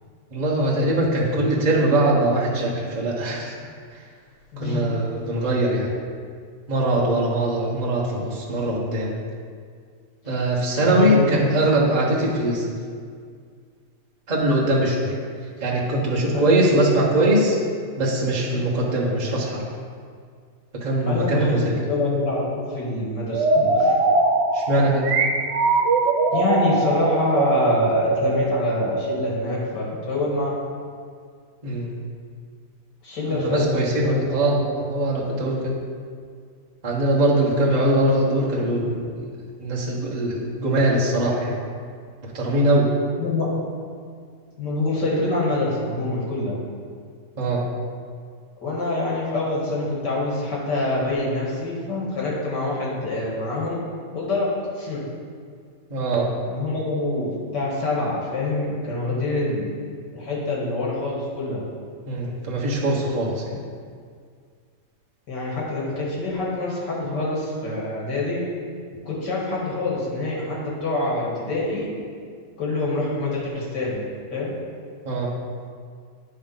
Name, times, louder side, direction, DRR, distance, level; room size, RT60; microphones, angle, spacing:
voice 1, 0.3-3.6 4.6-5.9 6.7-9.1 10.3-12.8 14.3-15.1 15.6-17.6 18.0-19.6 20.7-21.7 24.5-25.1 31.6-31.9 33.3-35.7 36.8-39.1 39.6-41.6 42.2-42.9 47.4-47.6 55.9-56.3 62.0-63.6 75.1-75.3, right 1 dB, 25° right, -5 dB, 1.2 m, -21 dB
voice 2, 4.5-4.9 10.2-10.4 10.8-11.6 16.3-16.7 21.1-24.0 26.3-30.6 33.0-33.7 34.0-34.7 43.2-43.5 44.6-46.6 48.6-53.8 54.1-54.5 54.7-55.1 56.5-59.7 60.1-61.6 65.3-68.4 69.1-71.9 72.6-74.5, left 2 dB, 80° left, -5 dB, 2.3 m, -26 dB
sound 1, 23.3-30.0, right 3 dB, 80° right, 1.4 m, -22 dB
9.8 x 3.6 x 5.6 m, 2.1 s
omnidirectional pair, 1.9 m